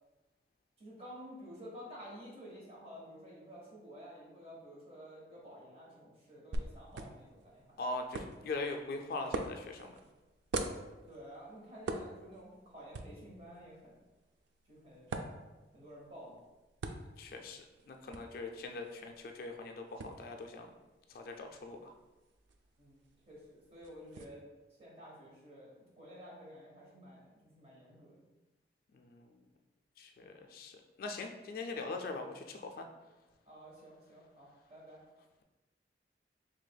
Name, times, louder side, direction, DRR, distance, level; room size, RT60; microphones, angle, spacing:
voice 1, 0.8-7.8 11.1-14.0 14.7-15.2 15.7-16.4 22.8-23.0 23.3-24.4 24.8-28.3 33.5-35.0, equal, 35° right, -5 dB, 1.2 m, -51 dB
sound 1, 6.5-24.2, right 2 dB, 80° right, 0.3 m, -45 dB
voice 2, 7.8-10.0 17.2-19.1 19.4-20.7 21.1-21.8 29.0-29.3 30.0-30.7 31.0-32.9, left 3 dB, 55° left, 4 dB, 0.3 m, -41 dB
4.8 x 3.2 x 2.2 m, 1.1 s
head